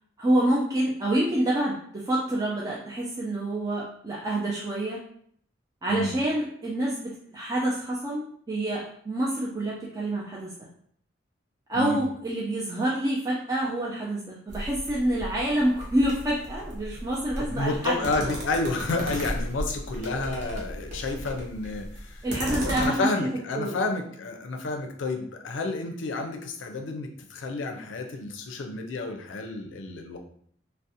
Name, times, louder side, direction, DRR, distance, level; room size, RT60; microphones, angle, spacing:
voice 1, 0.2-5.0 5.8-10.5 11.7-18.3 22.2-23.3 23.5-23.8, right 1 dB, 20° right, -5 dB, 0.3 m, -27 dB
sound 1, 14.5-22.9, equal, 40° right, 0.7 m, -35 dB
voice 2, 17.4-30.2, left 3 dB, 85° left, 4 dB, 0.4 m, -30 dB
2.4 x 2.0 x 2.7 m, 0.63 s
head